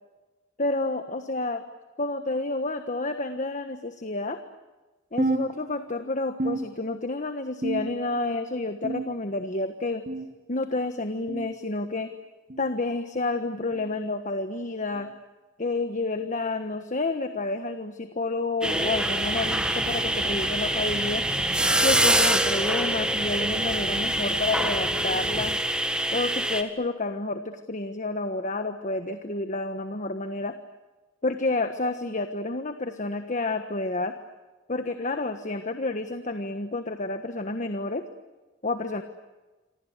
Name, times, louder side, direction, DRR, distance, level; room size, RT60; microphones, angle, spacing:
voice 1, 0.6-1.6 2.0-4.4 5.1-10.0 10.5-12.1 12.6-15.1 15.6-21.2 21.8-25.5 26.1-30.5 31.2-34.1 34.7-38.0 38.6-39.0, left 2 dB, 40° left, 8 dB, 1.4 m, -29 dB
sound 1, 5.2-6.0 6.4-7.2 7.6-8.2 8.8-9.4 10.1-10.4 11.3-11.5 12.5-12.7 13.7-13.9 14.9-15.1 16.2-16.3 17.4-17.6 18.6-18.7 19.8-19.9, right 2 dB, 45° right, 2.3 m, -32 dB
sound 2, 18.6-26.6, right 1 dB, 5° right, 1.8 m, -25 dB
Alarm, 18.7-25.6, right 2 dB, 25° right, 1.5 m, -37 dB
28.0 x 25.5 x 8.2 m, 1.2 s
head